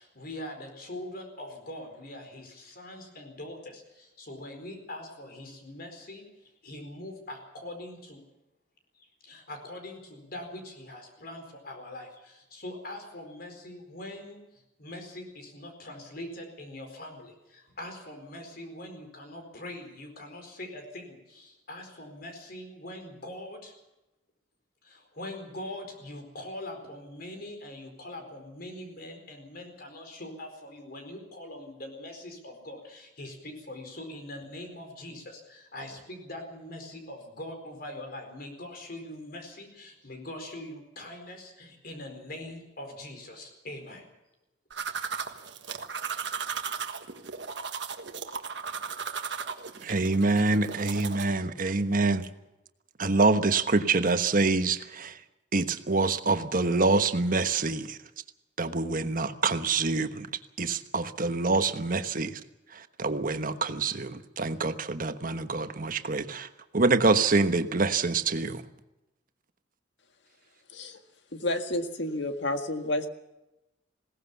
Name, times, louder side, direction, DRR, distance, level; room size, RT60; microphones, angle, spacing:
voice 1, 0.0-8.2 8.9-23.7 24.8-44.0 44.9-45.0, left 1 dB, 55° left, 5 dB, 4.5 m, -42 dB
sound 1, 44.7-51.3, right 6 dB, 70° right, 1.5 m, -36 dB
voice 2, 49.8-52.3 53.0-55.2 55.5-58.0 58.6-60.3 60.6-62.4 62.7-66.5 66.7-68.6, right 3 dB, 50° right, 9 dB, 1.2 m, -26 dB
voice 3, 71.3-73.1, left 1 dB, 70° left, 7 dB, 1.8 m, -30 dB
21.0 x 18.0 x 7.1 m, 0.96 s
head